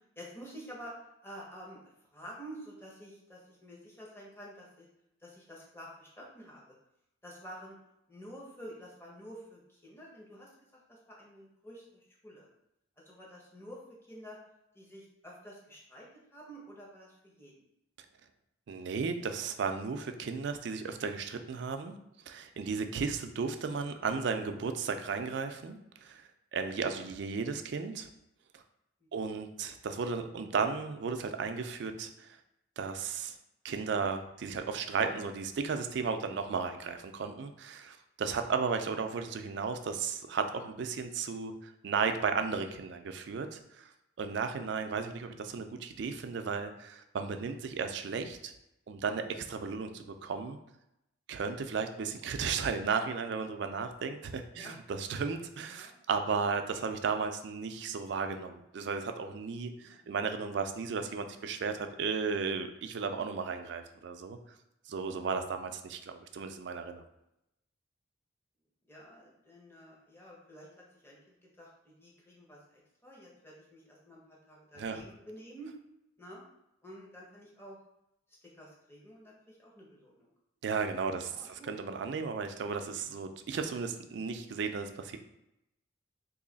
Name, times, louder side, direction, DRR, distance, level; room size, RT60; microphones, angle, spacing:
voice 1, 0.2-1.8 2.1-4.9 5.2-6.7 7.2-7.8 8.1-12.5 13.0-14.4 14.7-17.5 29.0-29.2 54.5-54.7 55.7-56.0 59.7-60.0 61.3-61.5 68.8-75.7 76.2-76.4 76.8-77.8 78.4-80.3 81.2-81.7, equal, 10° left, -4 dB, 0.7 m, -50 dB
voice 2, 18.7-22.0 22.3-28.1 28.5-28.6 29.1-32.4 32.8-33.4 33.6-43.9 44.2-48.5 48.9-50.6 51.3-64.4 64.9-67.0 74.8-75.0 80.6-85.2, right 5 dB, 60° right, 7 dB, 0.3 m, -34 dB
3.1 x 2.7 x 3.9 m, 0.84 s
head